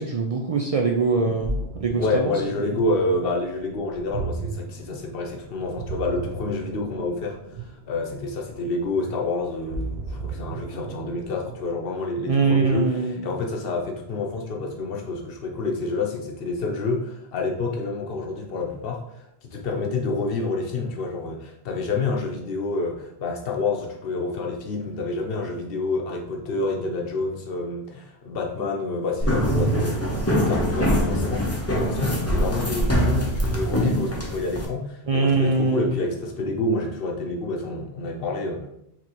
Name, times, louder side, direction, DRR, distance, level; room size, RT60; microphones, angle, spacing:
voice 1, 0.0-2.3 12.3-13.2 35.1-36.0, right 4 dB, 55° right, 2 dB, 0.4 m, -22 dB
Ocean, 1.1-11.8, right 2 dB, 75° right, 1.1 m, -35 dB
voice 2, 2.0-38.7, left 3 dB, 60° left, 1 dB, 1.0 m, -28 dB
sound 1, 29.2-34.6, equal, 15° left, 0.6 m, -23 dB
6.0 x 3.0 x 3.0 m, 0.79 s
omnidirectional pair, 1.1 m